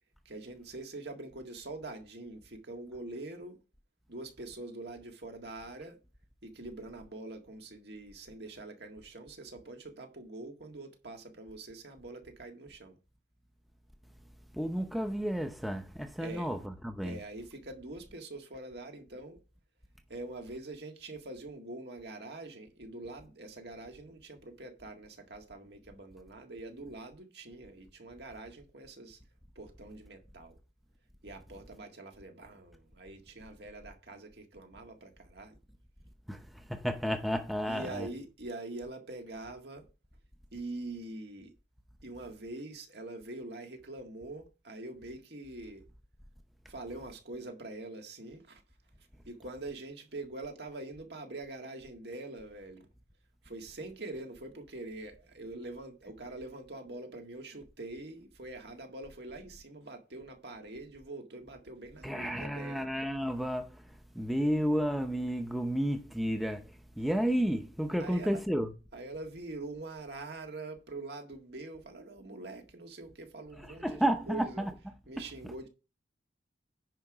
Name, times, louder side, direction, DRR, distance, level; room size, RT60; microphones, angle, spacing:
voice 1, 0.2-3.6 4.1-6.0 6.4-12.9 16.2-16.5 17.0-19.4 20.1-29.2 29.5-30.6 31.2-35.5 37.6-39.9 40.5-41.5 42.0-45.8 46.7-48.6 49.3-52.9 53.4-62.9 68.0-68.4 68.9-74.7 75.1-75.7, right 2 dB, 60° right, 1.8 m, -44 dB
voice 2, 14.5-17.2 36.3-38.1 62.0-63.8 64.1-66.7 67.0-68.7 73.8-74.7, equal, ahead, 0.7 m, -31 dB
10.0 x 4.9 x 4.9 m
head